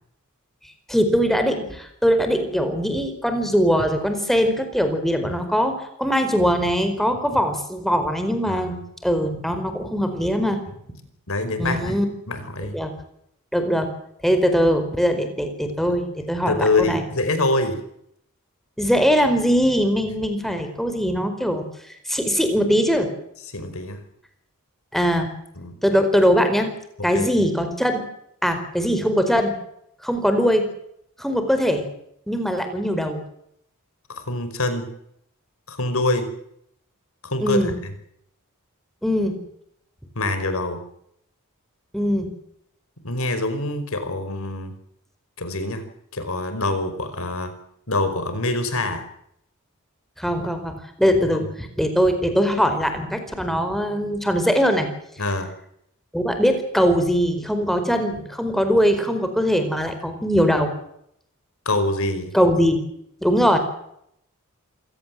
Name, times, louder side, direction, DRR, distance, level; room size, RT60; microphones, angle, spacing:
voice 1, 0.9-10.6 11.6-12.1 12.7-12.9 13.5-13.9 14.2-17.0 18.8-21.6 22.1-23.1 24.9-25.3 25.8-26.7 27.0-28.0 28.4-29.6 30.0-30.7 31.2-31.9 32.3-33.2 37.4-37.7 39.0-39.4 41.9-42.3 50.2-54.9 56.1-60.7 62.3-62.8 63.2-63.6, equal, ahead, 7 dB, 4.6 m, -21 dB
voice 2, 8.5-8.8 11.3-12.0 12.3-12.8 15.9-16.0 16.5-17.8 23.5-24.0 25.6-25.7 27.1-27.3 34.1-34.9 35.7-36.3 37.2-37.6 40.1-40.8 43.0-44.7 45.4-45.8 46.1-47.5 47.9-49.0 51.3-51.4 55.2-55.5 61.6-62.3, left 2 dB, 65° left, 10 dB, 5.1 m, -25 dB
27.5 x 17.0 x 7.7 m, 0.73 s
head